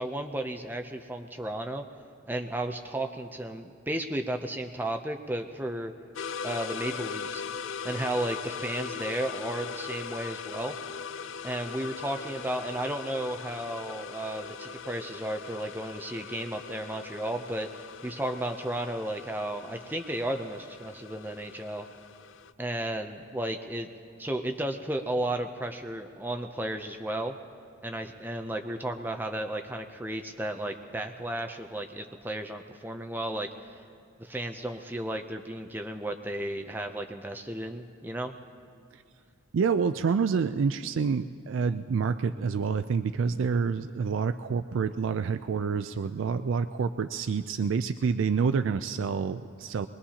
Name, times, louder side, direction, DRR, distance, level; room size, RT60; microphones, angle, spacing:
voice 1, 0.0-1.9 2.3-5.9 6.4-7.4 7.8-10.8 11.4-17.7 18.0-21.9 22.6-23.9 24.2-27.3 27.8-33.5 34.2-38.3, right 1 dB, 10° right, 5 dB, 0.5 m, -33 dB
sound 1, 6.2-22.5, left 6 dB, 70° left, 0.4 m, -40 dB
voice 2, 39.5-49.9, right 5 dB, 75° right, 10 dB, 0.4 m, -28 dB
23.5 x 21.0 x 2.9 m, 2.3 s
head